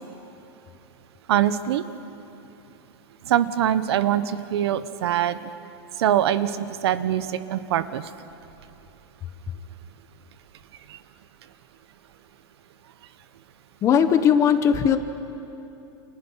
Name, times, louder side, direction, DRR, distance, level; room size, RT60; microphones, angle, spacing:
voice 1, 1.3-1.8 3.2-5.4 6.0-8.0 10.9-11.0, right 11 dB, 70° right, 13 dB, 1.2 m, -23 dB
voice 2, 13.8-15.0, left 8 dB, 20° left, 9 dB, 1.1 m, -18 dB
29.5 x 28.0 x 5.8 m, 2.9 s
supercardioid pair, 160°, 14 cm